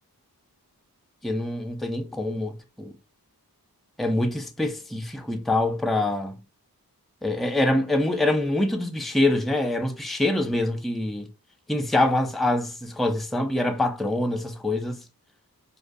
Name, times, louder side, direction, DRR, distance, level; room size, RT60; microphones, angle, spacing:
voice 1, 1.2-2.9 4.0-6.4 7.2-11.3 11.7-15.0, left 1 dB, ahead, 0.4 m, -25 dB
2.3 x 2.2 x 2.5 m
wide cardioid pair, 45°, 37 cm